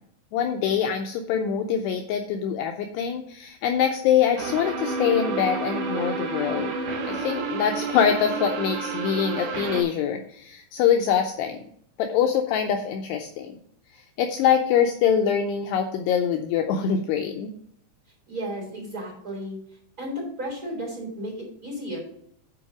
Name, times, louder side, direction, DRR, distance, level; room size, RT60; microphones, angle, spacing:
voice 1, 0.3-6.7 7.1-11.6 12.0-13.5 14.2-17.5, left 8 dB, 85° left, 4 dB, 2.5 m, -24 dB
sound 1, 4.4-9.8, right 4 dB, 60° right, 2.7 m, -29 dB
voice 2, 18.3-19.6 20.0-22.0, equal, 20° right, -2 dB, 3.6 m, -33 dB
10.0 x 4.8 x 5.8 m, 0.68 s
omnidirectional pair, 5.5 m